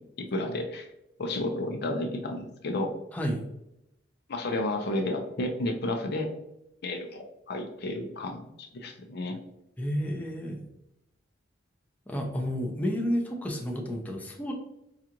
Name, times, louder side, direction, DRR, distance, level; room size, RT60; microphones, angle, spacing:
voice 1, 0.2-0.9 1.2-3.0 4.3-6.3 6.8-9.4, left 1 dB, 60° left, 3 dB, 0.6 m, -32 dB
voice 2, 9.8-10.7 12.1-14.5, equal, 10° left, 0 dB, 0.6 m, -31 dB
4.8 x 2.4 x 2.9 m, 0.83 s
head